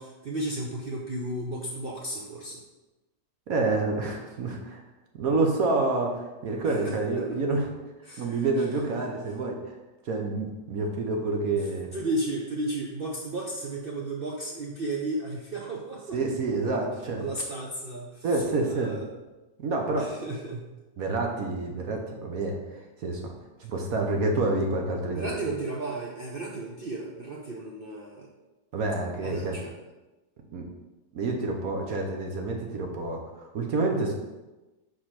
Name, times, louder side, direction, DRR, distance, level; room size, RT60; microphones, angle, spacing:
voice 1, 0.0-2.6 6.7-7.4 8.0-8.6 8.9-9.1 11.5-16.2 16.7-16.8 17.2-18.3 18.6-19.2 20.0-20.7 25.1-28.3 29.2-29.8, right 2 dB, 85° right, -2 dB, 0.5 m, -34 dB
voice 2, 3.5-4.8 5.2-7.6 8.2-9.6 10.1-11.9 16.1-17.2 18.2-18.9 19.6-20.1 21.0-22.6 23.0-23.2 23.6-25.3 28.7-29.6 30.5-30.6 31.1-34.1, right 3 dB, 60° right, 2 dB, 1.1 m, -28 dB
4.9 x 4.3 x 5.7 m, 1.1 s
omnidirectional pair, 2.0 m